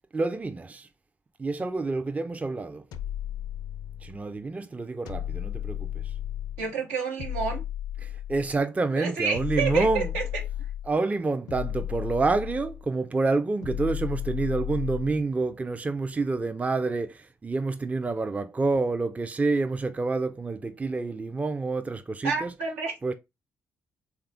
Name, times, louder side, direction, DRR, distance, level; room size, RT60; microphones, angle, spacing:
voice 1, 0.1-0.9 1.4-2.8 4.0-6.1 8.0-10.1 10.8-22.5 23.0-23.1, right 3 dB, 20° right, 0.4 m, -28 dB
sound 1, 2.9-4.2 5.1-6.7 7.2-8.6 9.3-10.9 11.5-12.9 13.6-15.2, left 11 dB, 70° left, 0.4 m, -34 dB
voice 2, 6.6-7.6 8.9-10.4 22.2-23.1, right 5 dB, 80° right, 0.9 m, -29 dB
3.5 x 2.3 x 3.4 m
hypercardioid pair, 45°, 7 cm